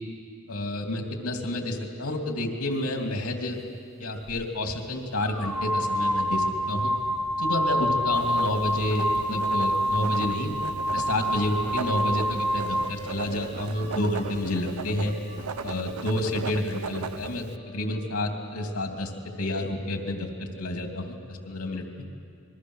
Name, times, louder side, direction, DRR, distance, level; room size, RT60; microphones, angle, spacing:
voice 1, 0.5-3.6 4.0-6.9 7.4-10.5 10.9-15.1 15.6-19.1 19.4-21.8, left 1 dB, 85° left, 3 dB, 2.9 m, -29 dB
sound 1, 4.3-4.4 5.3-13.0, equal, ahead, 0.6 m, -27 dB
Writing, 8.1-17.6, right 6 dB, 75° right, 0.7 m, -38 dB
sound 2, 12.3-18.4, right 1 dB, 30° right, 3.7 m, -46 dB
27.5 x 22.0 x 6.4 m, 2.3 s
head